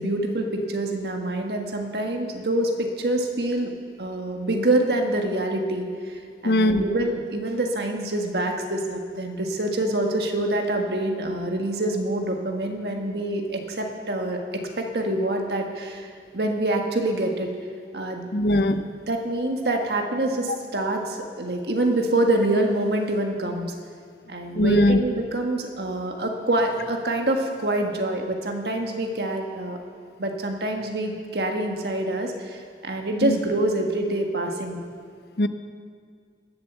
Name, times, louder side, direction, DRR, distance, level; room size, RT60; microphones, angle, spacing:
voice 1, 0.0-3.7 4.0-14.4 14.8-17.5 17.9-18.3 19.1-23.7 24.3-29.8 30.2-34.8, right 1 dB, 65° right, 3 dB, 1.6 m, -26 dB
voice 2, 6.4-6.8 18.3-18.8 24.6-25.0 33.2-33.4 35.4-35.5, left 1 dB, 60° left, 10 dB, 0.7 m, -20 dB
18.5 x 7.5 x 7.0 m, 2.1 s
head